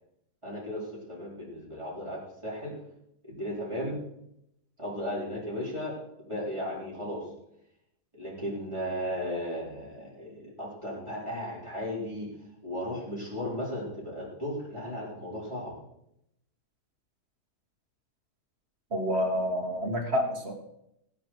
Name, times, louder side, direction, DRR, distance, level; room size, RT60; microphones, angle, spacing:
voice 1, 0.4-2.7 3.2-4.0 4.8-5.9 6.2-7.2 8.1-12.3 12.6-15.7, equal, 15° right, -5 dB, 4.3 m, -35 dB
voice 2, 18.9-20.5, equal, 40° right, 2 dB, 2.0 m, -28 dB
16.0 x 10.5 x 4.6 m, 0.78 s
omnidirectional pair, 1.7 m